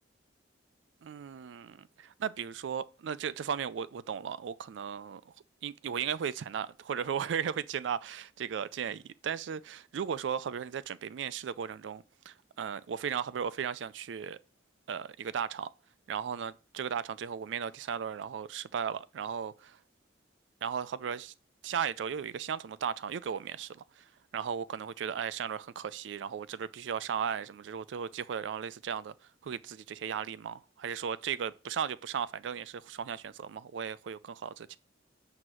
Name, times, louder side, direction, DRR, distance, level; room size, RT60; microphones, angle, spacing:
voice 1, 1.0-5.3 5.6-9.0 9.2-14.4 14.9-15.7 16.1-19.8 20.6-21.3 21.6-29.1 29.4-34.8, right 7 dB, 85° right, 0.4 m, -36 dB
7.9 x 2.8 x 6.1 m
head